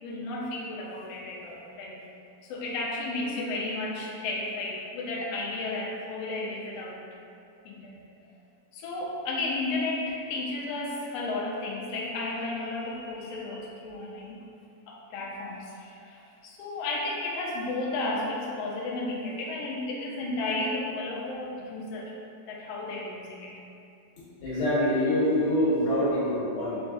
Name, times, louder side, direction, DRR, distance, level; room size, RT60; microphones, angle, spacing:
voice 1, 0.0-2.0 2.4-7.0 7.6-8.0 8.7-14.4 14.9-22.1 22.5-23.5, left 2 dB, 80° left, -4 dB, 1.4 m, -33 dB
voice 2, 24.4-26.8, left 1 dB, 55° left, -10 dB, 1.8 m, -25 dB
4.7 x 4.0 x 2.3 m, 2.6 s
omnidirectional pair, 3.5 m